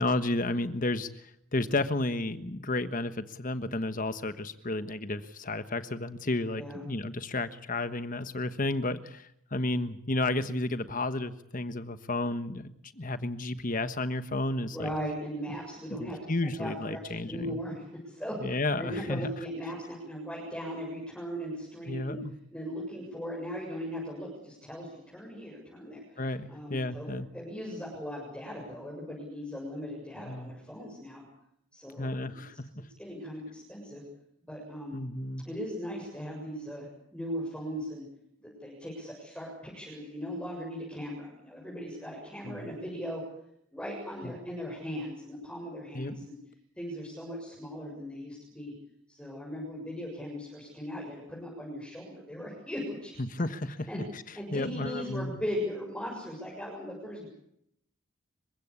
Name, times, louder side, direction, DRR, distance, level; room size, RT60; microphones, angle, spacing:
voice 1, 0.0-14.9 16.0-17.6 18.4-19.3 21.9-22.3 25.9-27.3 30.3-30.5 32.0-32.9 34.9-35.5 42.4-42.8 44.2-44.3 45.9-46.1 53.2-54.2 54.5-55.3, left 2 dB, 40° left, 11 dB, 1.3 m, -32 dB
voice 2, 14.7-22.2 22.5-26.2 26.5-31.2 31.7-32.3 33.0-34.0 34.4-35.0 35.4-38.1 38.4-43.2 43.7-46.3 46.8-48.7 49.1-53.1 53.9-54.0 54.3-57.3, equal, 5° left, -3 dB, 7.1 m, -38 dB
30.0 x 16.5 x 8.4 m, 0.74 s
head